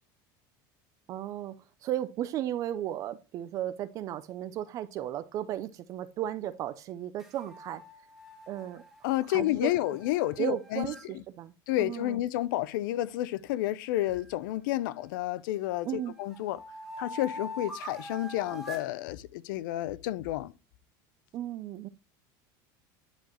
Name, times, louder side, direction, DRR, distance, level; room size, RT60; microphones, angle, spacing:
voice 1, 1.1-1.6 1.8-7.8 8.5-8.8 9.3-9.7 10.4-11.5 11.8-12.2 15.8-16.1 21.3-21.9, right 12 dB, 35° right, 0.4 m, -35 dB
sound 1, 7.2-11.0 14.0-15.2 15.7-18.9, equal, ahead, 2.0 m, -45 dB
voice 2, 9.0-10.9 11.7-16.6 17.0-20.5, left 15 dB, 90° left, 0.6 m, -30 dB
10.5 x 5.0 x 3.0 m
cardioid pair, 175°, 11 cm